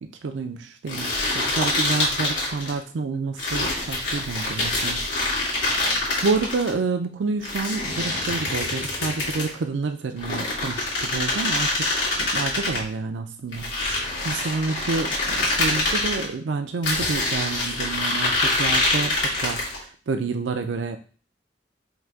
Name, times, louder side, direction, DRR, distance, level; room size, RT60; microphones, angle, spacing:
voice 1, 0.0-5.1 5.7-5.8 6.2-13.8 14.2-21.0, right 4 dB, 80° right, 6 dB, 0.4 m, -29 dB
sound 1, 0.9-2.8 3.4-6.7 7.4-9.6 10.2-12.8 13.5-16.2 16.8-19.8, left 2 dB, 80° left, 1.8 m, -25 dB
3.7 x 2.8 x 4.5 m, 0.38 s
head